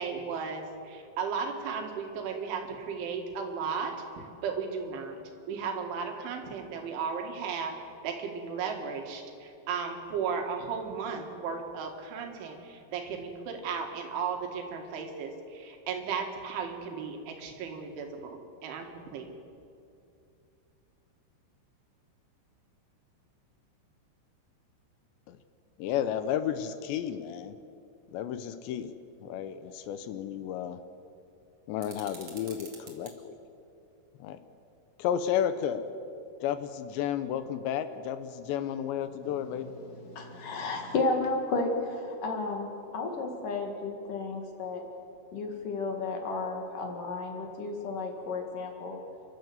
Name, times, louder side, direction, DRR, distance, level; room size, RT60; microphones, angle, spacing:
voice 1, 0.0-5.2 5.5-7.7 8.0-19.3, right 6 dB, 90° right, 4 dB, 4.4 m, -35 dB
voice 2, 25.8-27.6 28.1-28.9 29.2-30.8 31.7-33.4 34.2-34.4 35.0-35.9 36.4-39.7, left 9 dB, 80° left, 11 dB, 3.0 m, -32 dB
sound 1, 31.8-33.1, right 4 dB, 35° right, 2.6 m, -48 dB
voice 3, 40.1-44.8 45.3-49.0, left 3 dB, 55° left, 3 dB, 3.0 m, -32 dB
29.5 x 12.5 x 8.0 m, 2.6 s
omnidirectional pair, 5.3 m